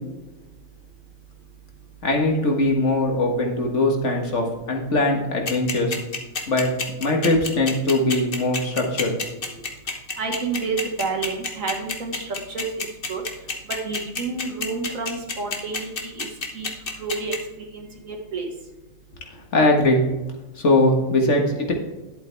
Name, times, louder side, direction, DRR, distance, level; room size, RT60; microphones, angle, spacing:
voice 1, 2.0-5.9 6.5-6.7 7.0-9.1 19.5-20.0 20.6-21.7, left 2 dB, 60° left, 1 dB, 1.8 m, -21 dB
sound 1, 5.5-17.4, left 4 dB, 45° left, 1.4 m, -27 dB
voice 2, 10.2-13.2 13.8-16.3 16.5-16.7 17.0-17.3 17.7-18.5, right 4 dB, 70° right, 3 dB, 1.9 m, -29 dB
11.0 x 7.8 x 3.4 m, 1.1 s
omnidirectional pair, 1.4 m